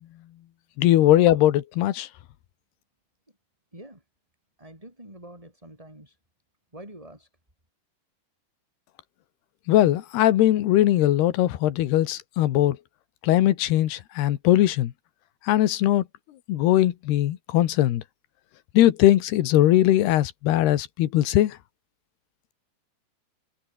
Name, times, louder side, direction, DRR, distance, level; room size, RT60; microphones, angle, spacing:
voice 1, 0.8-2.1 9.7-12.8 13.2-14.9 15.5-16.0 16.5-18.0 18.7-21.6, left 13 dB, 80° left, 3.4 m, -20 dB
voice 2, 3.7-4.0 4.6-6.2 6.7-7.3, right 1 dB, 10° right, 6.7 m, -45 dB
omnidirectional pair, 4.7 m